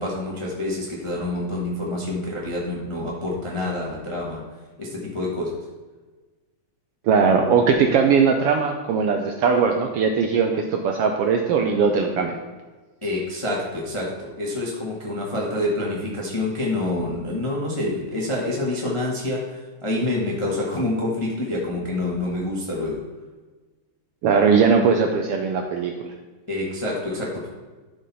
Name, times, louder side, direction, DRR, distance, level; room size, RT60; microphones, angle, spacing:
voice 1, 0.0-4.4 4.8-5.6 13.0-23.0 26.5-27.5, left 2 dB, 40° left, -3 dB, 0.4 m, -27 dB
voice 2, 7.0-12.4 24.2-26.1, right 5 dB, 85° right, 3 dB, 1.3 m, -19 dB
11.5 x 5.3 x 4.1 m, 1.3 s
omnidirectional pair, 3.4 m